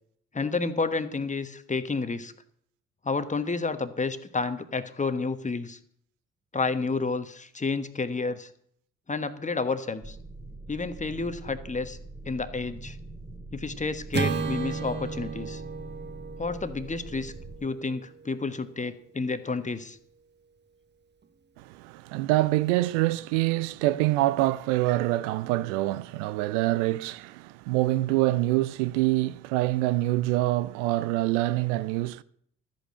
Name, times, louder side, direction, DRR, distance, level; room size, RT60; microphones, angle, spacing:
voice 1, 0.3-2.3 3.0-5.8 6.5-8.5 9.1-10.2 10.7-12.0 12.2-13.0 13.5-15.6 16.4-17.3 17.6-20.0, left 4 dB, 20° left, 1.3 m, -30 dB
sound 1, 10.0-17.6, right 2 dB, 5° right, 2.1 m, -43 dB
Acoustic guitar / Strum, 14.1-18.6, right 4 dB, 25° right, 1.1 m, -34 dB
voice 2, 21.6-32.2, right 17 dB, 65° right, 0.5 m, -25 dB
13.0 x 8.2 x 7.6 m
figure-of-eight pair, 45°, 38 cm